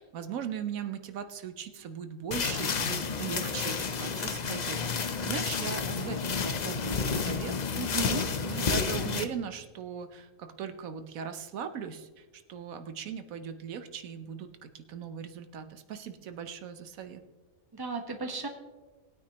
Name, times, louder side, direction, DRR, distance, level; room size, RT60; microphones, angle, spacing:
voice 1, 0.0-7.5 8.4-17.2, right 7 dB, 80° right, 9 dB, 1.2 m, -39 dB
sound 1, 2.3-9.2, left 5 dB, 45° left, 0.6 m, -31 dB
voice 2, 7.7-8.2 17.7-18.5, right 3 dB, 20° right, 4 dB, 1.1 m, -34 dB
19.5 x 9.2 x 2.9 m, 1.2 s
omnidirectional pair, 1.4 m